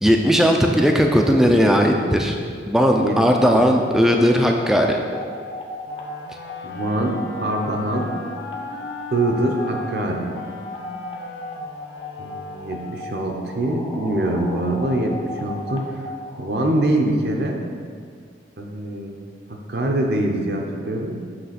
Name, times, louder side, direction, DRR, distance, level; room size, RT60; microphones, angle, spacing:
voice 1, 0.0-2.4 2.7-5.0, equal, ahead, 2 dB, 0.4 m, -17 dB
sound 1, 2.8-16.8, left 2 dB, 30° left, 0.7 m, -37 dB
voice 2, 3.0-3.6 6.6-8.1 9.1-10.3 12.2-16.1 16.4-17.6 18.6-19.2 19.7-21.2, right 1 dB, 60° right, 1 dB, 0.7 m, -24 dB
sound 2, 5.8-13.3, left 2 dB, 80° left, 0.6 m, -38 dB
7.7 x 3.3 x 5.8 m, 2.1 s
head